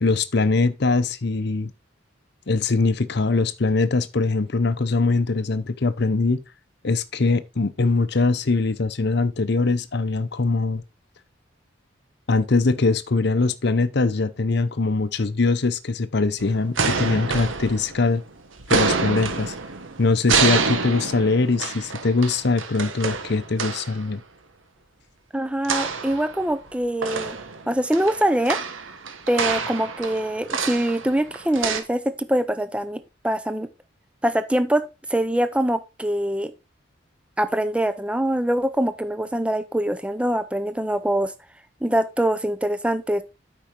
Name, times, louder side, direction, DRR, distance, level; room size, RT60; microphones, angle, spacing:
voice 1, 0.0-1.7 2.5-6.4 6.8-10.8 12.3-18.2 18.7-19.5 20.0-24.2, left 3 dB, 55° left, 0.7 m, -22 dB
sound 1, 16.4-18.2 18.6-24.0 25.6-26.7 27.0-31.8, right 4 dB, 80° right, 1.4 m, -27 dB
voice 2, 25.3-27.4 27.7-28.6 29.3-33.7 34.2-34.8 35.1-36.5 37.4-41.3 41.8-43.2, right 1 dB, 5° right, 0.7 m, -23 dB
8.8 x 5.5 x 4.5 m
head